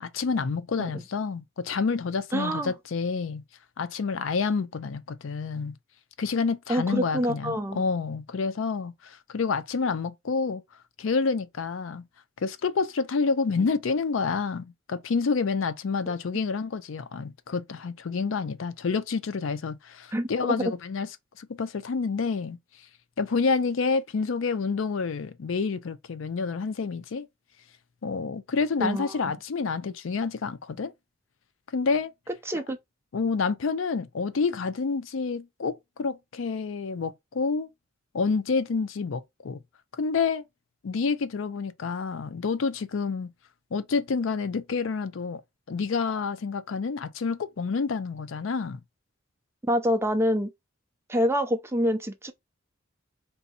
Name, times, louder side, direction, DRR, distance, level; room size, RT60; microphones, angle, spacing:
voice 1, 0.0-3.4 3.8-5.7 6.2-10.6 11.0-12.0 12.4-21.1 21.4-22.6 23.2-27.3 28.0-30.9 31.7-32.1 32.5-32.6 33.1-37.7 38.1-39.6 40.0-40.4 40.8-43.3 43.7-45.4 45.7-48.8, left 4 dB, 70° left, 0.5 m, -28 dB
voice 2, 2.3-2.7 6.7-7.8 20.1-20.7 28.8-29.1 32.5-32.8 49.6-50.5 51.1-52.3, equal, 10° right, 0.5 m, -26 dB
3.4 x 2.7 x 4.1 m
head